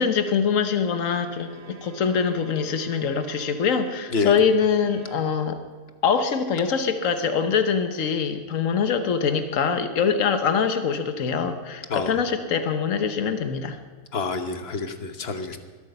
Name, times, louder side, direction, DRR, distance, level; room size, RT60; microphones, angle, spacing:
voice 1, 0.0-5.6 6.0-13.8, left 6 dB, 80° left, 8 dB, 1.4 m, -24 dB
Bowed string instrument, 1.2-5.3, right 6 dB, 80° right, 1.8 m, -44 dB
voice 2, 11.9-12.2 14.1-15.6, left 4 dB, 50° left, 8 dB, 1.4 m, -27 dB
22.0 x 8.4 x 6.8 m, 1.5 s
omnidirectional pair, 1.4 m